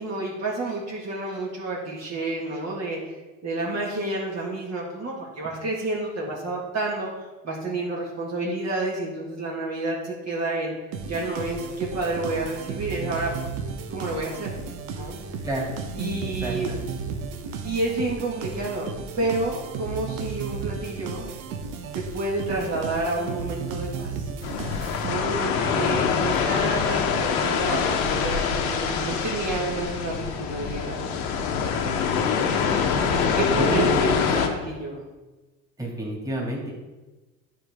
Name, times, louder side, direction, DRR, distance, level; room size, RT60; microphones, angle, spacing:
voice 1, 0.0-3.2 3.4-10.8 11.1-13.4 13.9-14.6 14.9-15.2 16.0-16.7 17.6-21.3 21.9-24.3 25.0-31.2 33.2-35.0, right 2 dB, 35° right, -4 dB, 1.7 m, -29 dB
sound 1, 10.9-25.5, right 5 dB, 70° right, 1.1 m, -34 dB
voice 2, 16.4-16.9 32.9-33.8 35.8-36.7, right 1 dB, 10° right, -3 dB, 2.4 m, -31 dB
sound 2, 24.4-34.5, left 6 dB, 70° left, 1.2 m, -25 dB
10.0 x 4.4 x 3.6 m, 1.2 s
hypercardioid pair, 90°, 44 cm